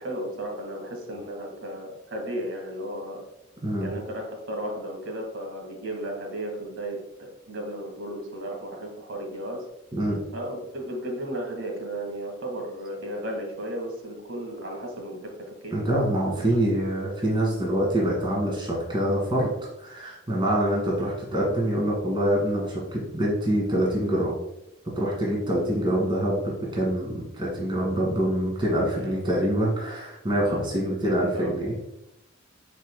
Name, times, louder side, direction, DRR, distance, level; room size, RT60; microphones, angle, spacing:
voice 1, 0.0-3.2 3.8-9.7 10.3-15.8 16.5-16.6 28.9-29.2 29.4-29.6 30.4-30.8 31.0-31.6, right 1 dB, 90° right, 1 dB, 1.9 m, -34 dB
voice 2, 15.7-19.5 19.8-24.3 25.0-31.7, right 1 dB, 25° right, -4 dB, 1.8 m, -25 dB
9.7 x 4.9 x 2.2 m, 0.89 s
head